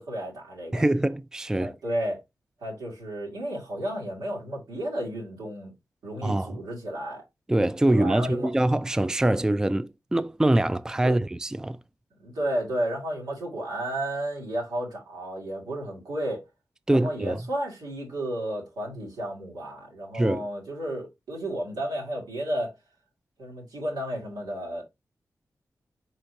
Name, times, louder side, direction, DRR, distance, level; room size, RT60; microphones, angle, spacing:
voice 1, 0.0-0.8 1.6-2.2 2.6-5.7 6.0-7.2 7.9-8.5 11.0-11.2 12.2-16.5 16.9-22.7 23.4-24.8, right 1 dB, 90° right, 2.1 m, -32 dB
voice 2, 0.7-1.7 6.2-6.5 7.5-11.8 16.9-17.4 20.1-20.4, right 1 dB, 10° right, 0.3 m, -24 dB
4.3 x 4.3 x 2.7 m
cardioid pair, 45°, 6 cm